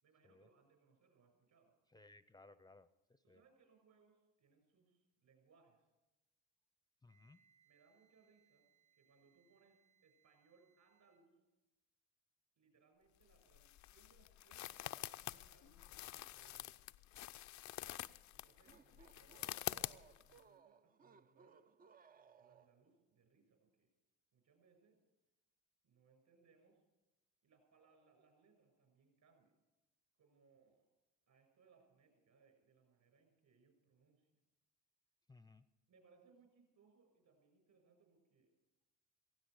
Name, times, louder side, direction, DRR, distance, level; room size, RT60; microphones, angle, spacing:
voice 1, 0.0-1.7 3.2-5.9 7.6-8.7 8.9-11.4 12.6-16.8 18.3-21.7 22.4-23.9 24.3-25.0 25.8-26.8 27.4-29.6 30.2-30.9 31.3-34.3 35.9-38.5, right 5 dB, 60° right, 5 dB, 6.5 m, -72 dB
voice 2, 1.9-3.4 7.0-7.4 18.6-18.8 35.3-35.7, left 3 dB, 10° left, 14 dB, 0.7 m, -63 dB
Wind instrument woodwind instrument, 7.0-11.2, right 8 dB, 75° right, 2.9 m, -77 dB
sound 1, 13.2-20.4, left 15 dB, 55° left, 0.5 m, -47 dB
sound 2, 18.5-23.0, right 6 dB, 25° right, 0.5 m, -65 dB
17.5 x 15.5 x 4.9 m, 1.0 s
hypercardioid pair, 70°, 36 cm